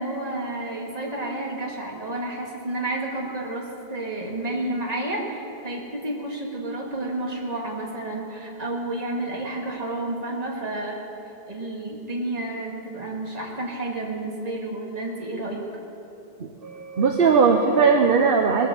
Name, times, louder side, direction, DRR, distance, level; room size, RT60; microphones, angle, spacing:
voice 1, 0.0-11.0 11.5-15.6, right 2 dB, 40° right, -1 dB, 2.1 m, -30 dB
voice 2, 16.4-18.7, right 5 dB, 65° right, 3 dB, 1.0 m, -19 dB
20.0 x 8.4 x 7.3 m, 3.0 s
omnidirectional pair, 1.0 m